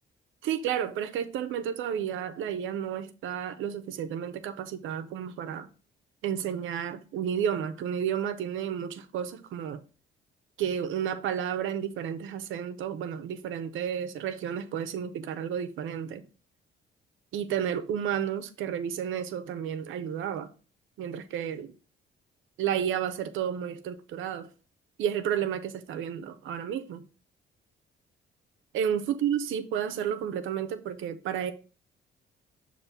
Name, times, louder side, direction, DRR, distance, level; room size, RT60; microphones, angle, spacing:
voice 1, 0.4-5.7 6.2-9.8 10.6-16.3 17.3-20.5 21.0-21.7 22.6-24.5 25.0-27.0 28.7-31.5, right 9 dB, 80° right, 0.7 m, -31 dB
6.6 x 2.7 x 5.5 m
cardioid pair, 90°, 20 cm